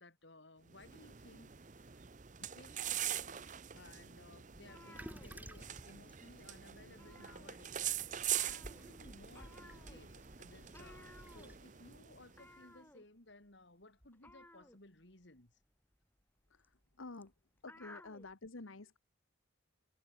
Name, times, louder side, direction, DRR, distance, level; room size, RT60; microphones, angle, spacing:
voice 1, 0.0-2.0 2.4-15.6 17.9-18.0, left 2 dB, 60° left, 3.0 m, -60 dB
sound 1, 0.7-12.5, right 11 dB, 35° right, 0.7 m, -43 dB
sound 2, 4.5-6.0 6.3-6.5 6.8-7.9 8.2-18.3, left 1 dB, 10° left, 6.3 m, -59 dB
Toilet flush, 4.9-11.6, equal, 10° right, 3.2 m, -55 dB
voice 2, 16.5-17.3 17.6-19.0, left 3 dB, 80° left, 1.3 m, -50 dB
head